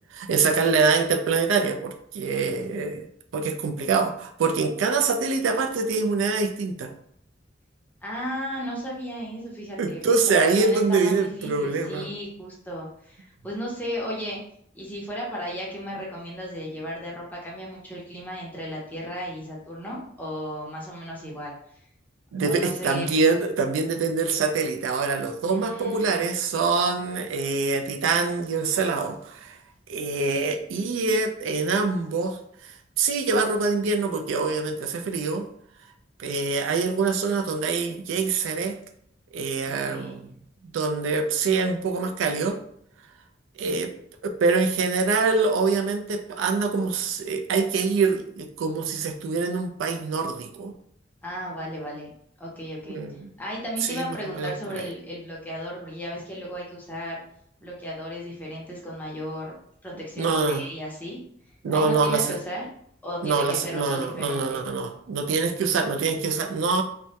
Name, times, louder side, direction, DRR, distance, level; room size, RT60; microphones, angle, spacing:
voice 1, 0.1-3.1 3.3-6.9 9.8-12.1 22.3-29.6 29.9-35.5 36.2-38.8 39.3-40.4 40.6-42.6 43.6-43.9 44.2-50.7 52.9-53.3 53.8-54.9 60.2-60.6 61.6-62.4 63.2-66.8, right 4 dB, 80° right, 5 dB, 0.3 m, -25 dB
voice 2, 8.0-10.0 10.3-14.4 14.7-21.5 22.4-23.1 25.5-26.2 39.8-40.2 51.2-52.1 52.4-53.0 53.4-57.2 57.6-59.5 59.8-61.2 61.7-62.7 63.0-64.6, equal, 10° left, -4 dB, 0.5 m, -35 dB
2.2 x 2.1 x 2.7 m, 0.68 s
head